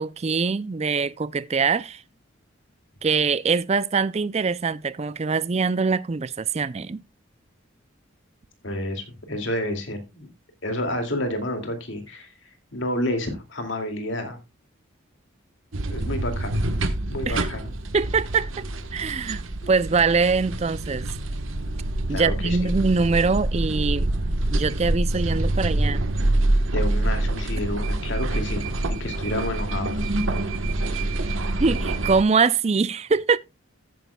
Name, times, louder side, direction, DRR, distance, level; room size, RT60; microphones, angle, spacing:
voice 1, 0.0-2.0 3.0-7.0 17.3-17.5 17.9-18.5 18.9-21.2 22.1-24.1 24.5-26.1 31.6-33.4, right 4 dB, 30° right, 0.4 m, -23 dB
voice 2, 8.6-10.3 10.6-12.3 12.7-14.4 15.9-16.6 17.1-17.7 22.1-22.7 26.7-30.0, left 1 dB, 65° left, 2.4 m, -30 dB
sound 1, 15.7-32.2, right 1 dB, 75° right, 1.2 m, -26 dB
14.0 x 9.4 x 2.3 m
head